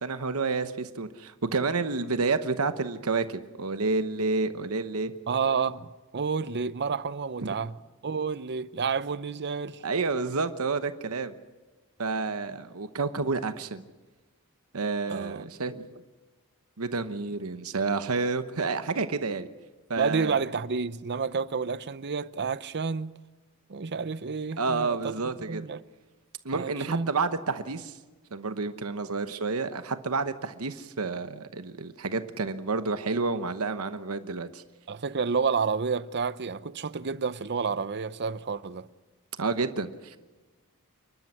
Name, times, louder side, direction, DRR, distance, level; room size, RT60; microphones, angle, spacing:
voice 1, 0.0-5.1 7.4-7.5 9.8-11.3 12.0-13.8 14.7-16.0 16.8-19.5 19.9-20.4 24.6-25.7 26.4-28.0 28.3-34.6 39.4-40.2, right 4 dB, 75° right, 1.0 m, -30 dB
voice 2, 5.3-7.7 8.0-9.8 15.1-15.5 20.0-23.1 23.7-25.1 25.4-25.8 26.5-27.1 34.9-38.9, right 5 dB, 50° right, 0.7 m, -30 dB
29.0 x 12.5 x 9.7 m
head